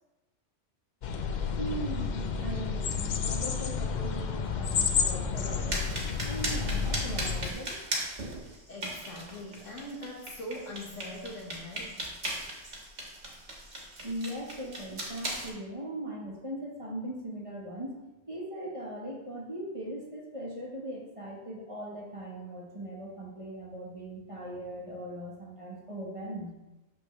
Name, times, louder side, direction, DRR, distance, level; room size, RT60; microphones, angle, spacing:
sound 1, 1.0-7.5, left 6 dB, 55° left, 0.5 m, -31 dB
voice 1, 1.6-5.9 6.2-7.8 14.0-26.5, right 1 dB, 30° right, -3 dB, 1.2 m, -39 dB
sound 2, 5.7-15.5, right 1 dB, 65° right, 1.7 m, -38 dB
voice 2, 8.7-12.1, left 1 dB, 85° left, -1 dB, 1.7 m, -42 dB
6.8 x 6.0 x 3.1 m, 1.0 s
omnidirectional pair, 1.2 m